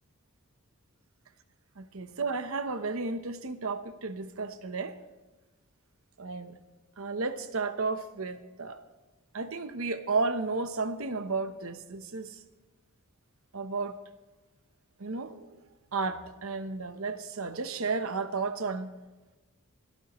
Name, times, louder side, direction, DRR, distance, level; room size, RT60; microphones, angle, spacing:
voice 1, 1.8-5.0 6.2-6.6 7.0-8.8 9.3-12.4 13.5-14.0 15.0-15.6 15.9-18.9, right 4 dB, 70° right, 0.9 m, -33 dB
26.5 x 12.5 x 3.1 m
head